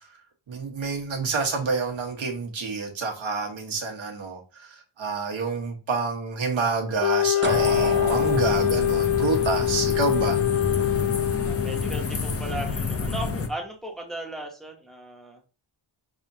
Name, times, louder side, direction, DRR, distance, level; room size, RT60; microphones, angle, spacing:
voice 1, 0.5-4.7 5.0-10.4, right 4 dB, 70° right, 1.3 m, -28 dB
Wind instrument woodwind instrument, 7.0-12.1, left 13 dB, 70° left, 0.8 m, -24 dB
sound 1, 7.4-13.5, left 4 dB, 30° left, 0.5 m, -29 dB
sound 2, 7.4-10.3, right 3 dB, 25° right, 0.4 m, -31 dB
voice 2, 11.5-15.4, right 1 dB, ahead, 0.8 m, -36 dB
5.7 x 3.5 x 2.7 m
wide cardioid pair, 175°, 48 cm